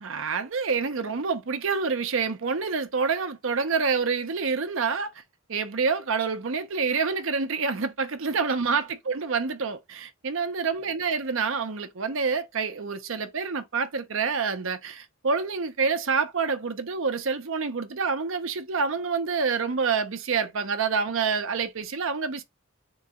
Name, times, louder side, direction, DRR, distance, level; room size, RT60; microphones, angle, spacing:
voice 1, 0.0-5.1 5.5-22.4, right 5 dB, 65° right, 0.7 m, -27 dB
3.9 x 2.4 x 3.9 m
head